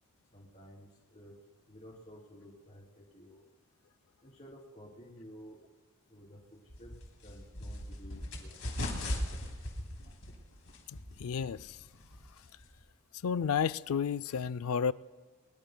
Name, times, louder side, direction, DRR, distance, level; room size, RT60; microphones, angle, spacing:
voice 1, 0.3-1.3 1.7-2.8 3.1-3.4 4.2-5.6 6.1-6.9 7.2-8.9, equal, 30° left, 3.2 m, -53 dB
sound 1, 6.7-12.8, left 1 dB, 60° left, 2.7 m, -40 dB
voice 2, 10.9-11.8 13.2-14.9, left 7 dB, 75° left, 0.4 m, -32 dB
22.5 x 21.0 x 2.2 m
head